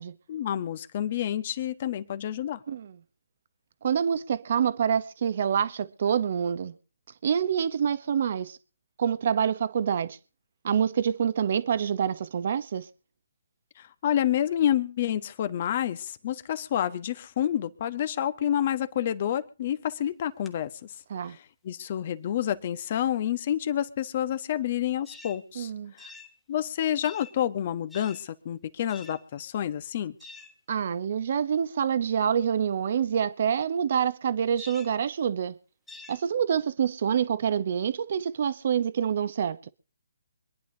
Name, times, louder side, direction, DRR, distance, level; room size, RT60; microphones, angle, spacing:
voice 1, 0.3-2.6 13.8-20.9 21.3-26.1 26.5-30.1, left 10 dB, 45° left, 1.3 m, -29 dB
voice 2, 3.8-6.7 7.2-8.6 9.0-10.2 10.6-12.9 21.1-21.4 25.6-25.9 30.7-35.6 36.1-39.7, right 8 dB, 55° right, 0.9 m, -26 dB
sound 1, 20.2-20.5 25.1-25.4 26.0-26.4 27.0-27.4 27.9-28.3 28.9-29.2 30.2-30.6 34.6-35.0 35.9-36.2, left 3 dB, 5° left, 1.4 m, -47 dB
25.5 x 10.5 x 2.8 m
hypercardioid pair, 145°, 0 cm